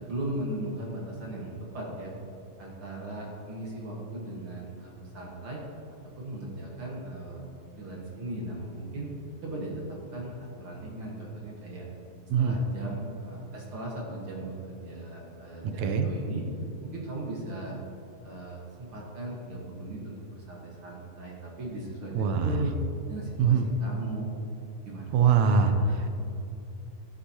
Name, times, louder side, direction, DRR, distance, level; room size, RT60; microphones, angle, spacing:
voice 1, 0.0-2.1 2.6-5.6 6.2-7.4 7.7-9.1 9.4-11.9 12.4-16.5 16.9-17.8 18.2-22.7 23.1-24.4 24.8-25.2, right 2 dB, 50° right, -3 dB, 1.8 m, -37 dB
voice 2, 15.6-16.1 22.1-22.6 23.4-23.7 25.1-26.1, right 6 dB, 80° right, 6 dB, 1.6 m, -23 dB
17.0 x 8.3 x 2.9 m, 2.7 s
omnidirectional pair, 4.2 m